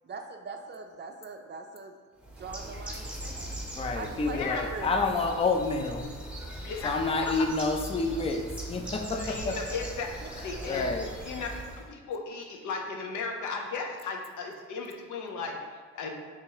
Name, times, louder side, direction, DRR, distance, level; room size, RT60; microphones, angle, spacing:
voice 1, 0.1-2.0 2.4-3.6 3.9-4.9 10.2-10.3 10.7-11.1, right 4 dB, 35° right, 4 dB, 0.5 m, -42 dB
Bird, 2.2-11.9, right 1 dB, 5° right, 0.9 m, -40 dB
voice 2, 3.8-6.1 6.8-9.6 10.7-11.1, left 3 dB, 20° left, 4 dB, 0.4 m, -29 dB
voice 3, 4.3-4.7 6.6-7.3 9.1-10.1 10.4-10.9 11.2-11.5 11.9-15.5 15.9-16.1, left 4 dB, 75° left, 2 dB, 0.7 m, -35 dB
3.5 x 2.8 x 4.7 m, 1.5 s
cardioid pair, 90°, 30 cm